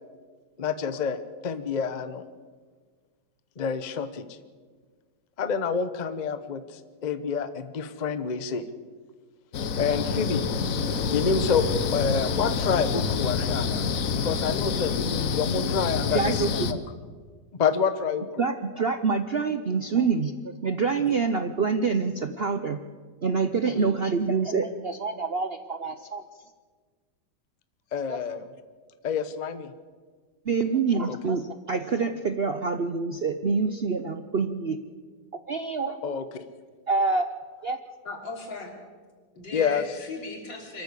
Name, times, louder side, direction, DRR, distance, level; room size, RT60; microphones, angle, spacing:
voice 1, 0.6-2.2 3.6-4.4 5.4-8.7 9.7-10.4 11.1-11.7 11.9-13.9 14.1-16.8 17.6-18.5 23.7-23.8 27.9-28.5 29.0-29.7 36.0-36.4 39.5-39.9, left 6 dB, 35° left, 11 dB, 0.8 m, -28 dB
sound 1, 9.5-16.7, left 5 dB, 55° left, 1.2 m, -27 dB
voice 2, 16.1-16.8 18.4-20.3 20.6-22.8 23.2-26.2 28.1-28.2 30.5-34.8 35.5-36.2 36.9-37.3 37.6-37.8, right 4 dB, 55° right, 9 dB, 0.6 m, -26 dB
voice 3, 38.1-38.7 39.4-40.8, left 3 dB, 85° left, 2 dB, 4.1 m, -37 dB
24.5 x 13.5 x 8.3 m, 1.5 s
omnidirectional pair, 2.0 m